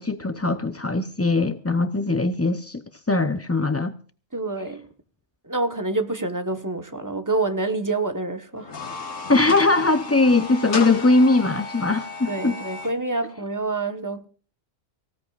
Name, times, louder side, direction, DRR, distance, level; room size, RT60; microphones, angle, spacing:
voice 1, 0.0-2.8 3.1-3.9 9.3-12.5, left 3 dB, 20° left, 0.5 m, -20 dB
voice 2, 4.3-4.9 5.4-8.7 12.3-14.2, right 2 dB, 15° right, 1.2 m, -27 dB
sound 1, 8.6-12.9, left 4 dB, 85° left, 2.1 m, -34 dB
24.0 x 16.5 x 2.4 m
omnidirectional pair, 1.3 m